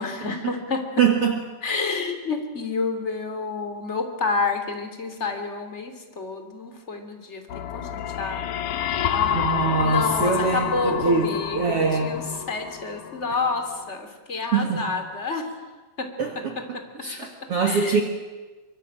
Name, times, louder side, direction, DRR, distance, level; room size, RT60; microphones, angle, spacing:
voice 1, 0.0-0.9 1.6-15.6 16.0-17.3 17.6-18.0, left 4 dB, 20° left, 6 dB, 2.8 m, -30 dB
voice 2, 1.0-1.4 9.3-12.3 14.5-14.9 16.2-18.0, right 5 dB, 50° right, 3 dB, 2.4 m, -24 dB
sound 1, 7.5-13.4, left 9 dB, 65° left, 2.5 m, -28 dB
24.5 x 23.5 x 8.9 m, 1.3 s
omnidirectional pair, 4.1 m